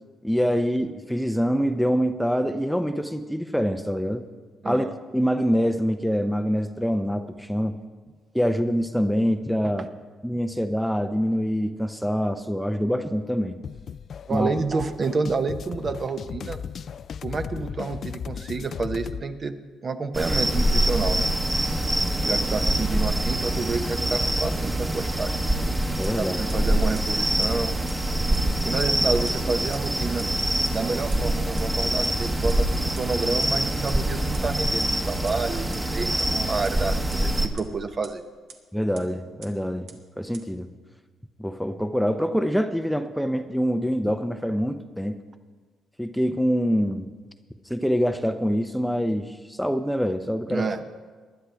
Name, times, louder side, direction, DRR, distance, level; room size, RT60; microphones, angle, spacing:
voice 1, 0.2-4.2 4.6-4.9 5.1-7.8 8.3-9.9 10.2-13.6 14.3-14.5 26.0-26.4 38.7-39.9 40.2-40.7 41.4-45.2 46.0-47.1 47.7-50.7, equal, ahead, 8 dB, 0.6 m, -25 dB
voice 2, 4.6-4.9 14.3-16.6 17.2-19.5 19.8-21.3 22.3-25.4 26.2-27.8 28.6-30.3 30.7-38.2 50.5-50.8, right 4 dB, 40° right, 8 dB, 0.9 m, -29 dB
sound 1, 13.6-19.3, left 7 dB, 55° left, 0.3 m, -36 dB
sound 2, 20.1-37.5, right 1 dB, 15° right, 1.1 m, -25 dB
sound 3, 26.0-26.1 26.5-26.6 27.0-27.1 27.4-27.5 27.9-28.0 28.3-28.4 28.8-28.9 29.3-29.4 29.7-29.8 30.2-30.3 30.6-30.7 31.1-31.2 31.6-31.7 32.0-32.1 32.5-32.6 33.0-33.1 33.4-33.5 33.9-34.0 34.3-34.4 34.8-34.9 35.3-35.4 35.7-35.8 36.2-36.3 36.6-36.7 37.1-37.2 37.6-37.7 38.0-38.1 38.5-38.6 39.0-39.1 39.4-39.5 39.9-40.0 40.3-40.4, right 6 dB, 75° right, 1.3 m, -43 dB
19.5 x 11.0 x 3.4 m, 1.5 s
cardioid pair, 90°, 0 cm